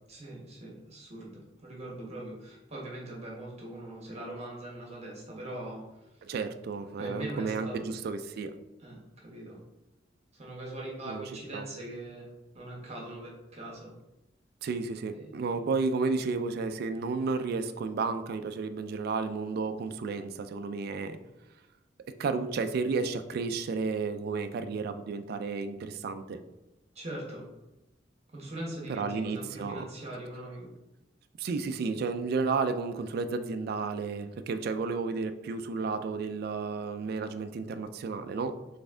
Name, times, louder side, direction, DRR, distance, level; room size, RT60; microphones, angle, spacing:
voice 1, 0.1-6.1 7.0-7.9 8.8-9.6 10.3-12.3 12.5-13.9 15.1-15.5 26.9-27.5 28.3-30.7, right 1 dB, 35° right, -3 dB, 1.3 m, -41 dB
voice 2, 6.2-8.5 11.1-11.7 14.6-21.2 22.2-26.4 28.9-29.8 31.4-38.5, right 4 dB, 55° right, 9 dB, 0.3 m, -32 dB
4.1 x 3.4 x 3.7 m, 1.0 s
head